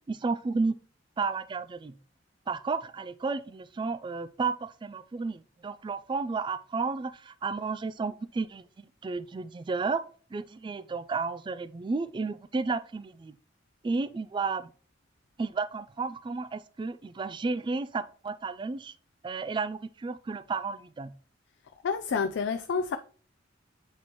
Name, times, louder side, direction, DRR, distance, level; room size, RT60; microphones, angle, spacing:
voice 1, 0.1-0.7 1.2-1.9 2.5-10.0 10.3-13.3 13.8-14.7 15.4-18.9 19.2-21.1, right 4 dB, 25° right, 0.3 m, -32 dB
voice 2, 21.8-23.0, left 5 dB, 65° left, 0.4 m, -28 dB
7.7 x 4.2 x 2.9 m
head